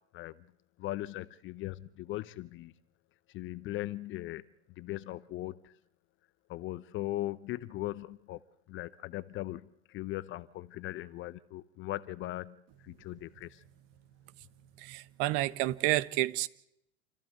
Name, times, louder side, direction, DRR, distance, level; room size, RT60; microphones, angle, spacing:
voice 1, 0.8-2.7 3.3-4.4 4.8-5.7 6.5-8.4 8.7-13.6, left 16 dB, 35° left, 0.8 m, -39 dB
voice 2, 14.8-16.5, right 17 dB, 50° right, 1.2 m, -30 dB
28.5 x 14.5 x 8.1 m
hypercardioid pair, 100°, 32 cm